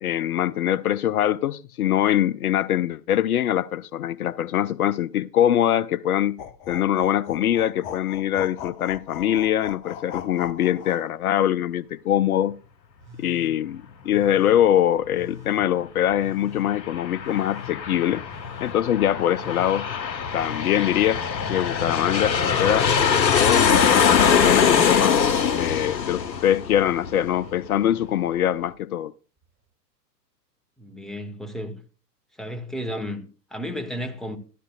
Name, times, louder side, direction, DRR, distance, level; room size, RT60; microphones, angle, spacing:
voice 1, 0.0-6.4 6.7-12.5 13.2-18.2 18.6-19.8 20.3-21.2 21.5-22.9 23.4-25.2 25.6-29.1, left 11 dB, 60° left, 0.6 m, -23 dB
sound 1, 6.4-11.1, left 9 dB, 25° left, 0.7 m, -39 dB
Telephone, 13.0-13.5 14.0-14.6 15.1-15.6 16.1-16.7 17.2-17.7 18.2-18.8 19.3-19.8 20.3-20.9 21.4-21.9 22.4-24.0 24.3-25.0 25.6-26.1 26.6-27.1 27.7-28.2 29.4-29.5, left 5 dB, 25° right, 3.8 m, -44 dB
Aircraft, 16.6-27.7, left 6 dB, 90° left, 0.9 m, -22 dB
voice 2, 30.8-31.8 32.4-34.4, equal, ahead, 1.0 m, -33 dB
13.0 x 13.0 x 2.3 m
figure-of-eight pair, 110°, 50 cm